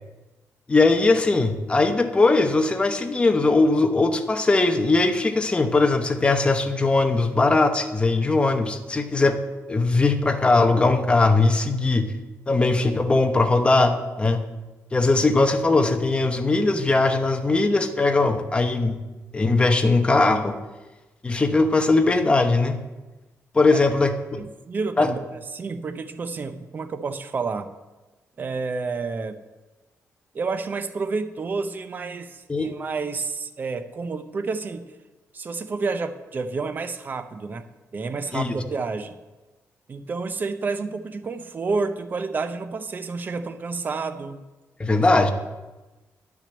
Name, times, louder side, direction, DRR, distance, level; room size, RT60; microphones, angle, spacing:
voice 1, 0.7-9.4 9.7-12.1 12.5-14.4 14.9-19.0 19.3-20.6 21.2-22.8 23.5-24.4 25.0-25.1 32.5-32.7 38.3-38.6 44.8-45.3, left 3 dB, 20° left, 6 dB, 1.0 m, -20 dB
voice 2, 24.4-27.7 28.4-29.4 30.3-34.9 35.3-37.7 37.9-39.2 39.9-44.4, right 4 dB, 35° right, 9 dB, 0.7 m, -30 dB
10.0 x 6.1 x 8.0 m, 1.1 s
cardioid pair, 135°, 5 cm